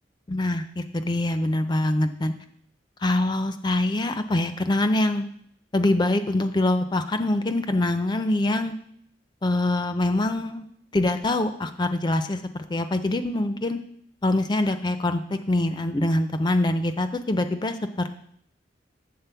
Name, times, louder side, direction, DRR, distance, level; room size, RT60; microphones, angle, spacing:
voice 1, 0.3-2.3 3.0-5.2 5.7-8.7 9.4-10.6 10.9-13.8 14.2-18.1, left 1 dB, 25° left, 9 dB, 0.4 m, -24 dB
8.2 x 3.9 x 6.8 m, 0.68 s
head